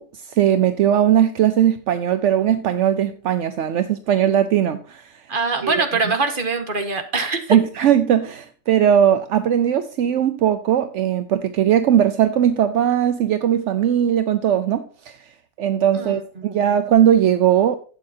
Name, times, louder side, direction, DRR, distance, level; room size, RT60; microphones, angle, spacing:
voice 1, 0.0-5.2 5.6-5.8 7.5-15.2 15.6-17.8, right 10 dB, 75° right, 1.0 m, -19 dB
voice 2, 5.3-7.6 15.9-16.6, right 3 dB, 45° right, 1.7 m, -23 dB
12.0 x 8.6 x 2.8 m
omnidirectional pair, 1.3 m